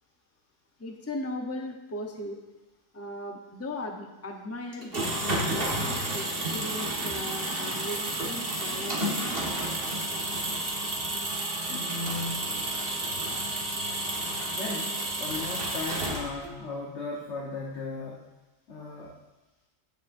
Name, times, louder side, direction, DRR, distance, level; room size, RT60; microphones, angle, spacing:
voice 1, 0.8-2.4 2.9-9.4, left 1 dB, 15° left, 2 dB, 0.8 m, -38 dB
sound 1, 4.7-16.6, right 1 dB, 50° right, 1.9 m, -31 dB
voice 2, 11.7-12.4 14.5-18.3 18.7-19.1, left 3 dB, 70° left, -3 dB, 1.5 m, -36 dB
16.0 x 7.4 x 2.6 m, 1.1 s
omnidirectional pair, 1.2 m